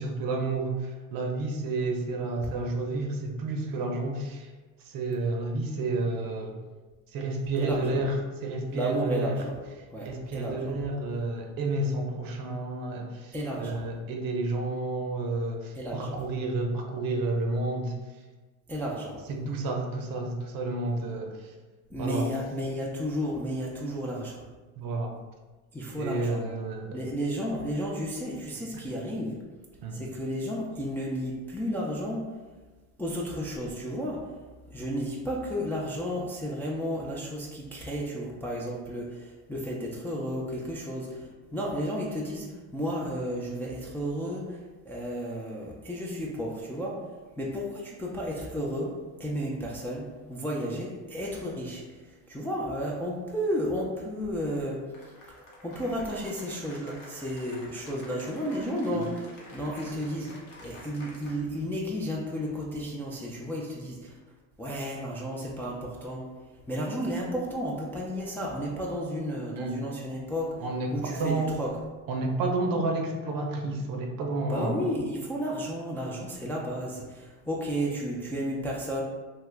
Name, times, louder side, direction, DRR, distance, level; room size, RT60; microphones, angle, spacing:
voice 1, 0.0-4.5 4.9-6.6 7.1-8.2 8.4-9.4 10.0-18.0 19.3-21.5 22.0-22.3 24.8-25.1 26.0-27.0 28.7-28.8 29.8-30.0 58.9-59.0 69.5-69.8 70.6-71.5 72.1-74.8, right 2 dB, 55° right, 2 dB, 0.6 m, -30 dB
voice 2, 7.6-8.0 8.7-9.5 9.9-10.7 13.3-13.8 15.7-16.2 18.7-19.2 21.9-24.4 25.7-26.4 26.9-29.4 29.9-32.3 33.0-34.3 34.7-47.0 47.4-55.2 55.6-64.1 64.6-66.3 66.7-70.6 70.9-71.7 74.5-79.0, equal, 5° left, -4 dB, 0.3 m, -33 dB
Cheering / Applause, 54.9-61.7, left 1 dB, 80° left, 1.1 m, -49 dB
2.9 x 2.3 x 3.2 m, 1.3 s
supercardioid pair, 90°, 42 cm